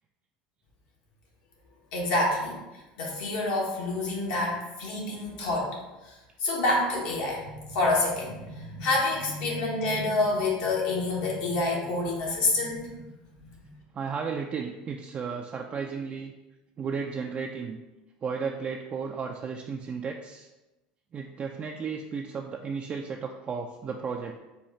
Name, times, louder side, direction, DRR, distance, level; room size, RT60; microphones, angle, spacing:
voice 1, 1.9-2.6 3.0-5.8 6.0-6.1 6.4-12.9, left 2 dB, 70° left, -2 dB, 1.3 m, -27 dB
voice 2, 13.9-16.3 16.8-17.8 18.2-20.5 21.1-24.4, right 5 dB, 35° right, 2 dB, 0.3 m, -34 dB
4.3 x 2.3 x 4.1 m, 1.1 s
hypercardioid pair, 90°, 4 cm